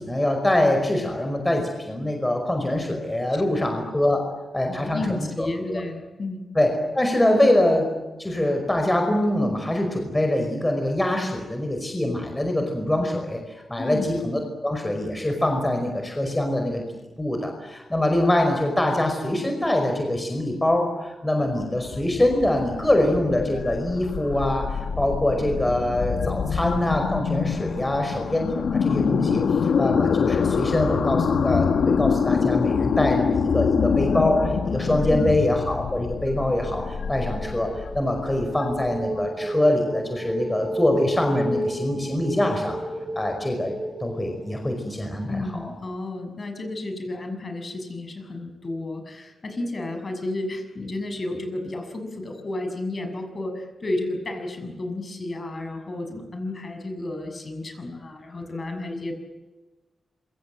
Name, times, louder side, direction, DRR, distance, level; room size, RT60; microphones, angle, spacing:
voice 1, 0.0-4.2 4.5-5.8 6.6-7.9 8.2-16.8 17.2-42.8 43.1-43.7 44.0-45.4, left 1 dB, 15° left, 3 dB, 5.2 m, -24 dB
voice 2, 3.3-3.8 4.7-6.5 13.8-14.1 35.1-35.3 45.3-59.1, left 2 dB, 40° left, 5 dB, 6.7 m, -32 dB
sound 1, 21.4-39.2, left 6 dB, 85° left, 1.5 m, -25 dB
sound 2, 36.1-45.0, right 1 dB, 20° right, 1.8 m, -32 dB
27.0 x 25.0 x 7.9 m, 1.2 s
wide cardioid pair, 115°, 0 cm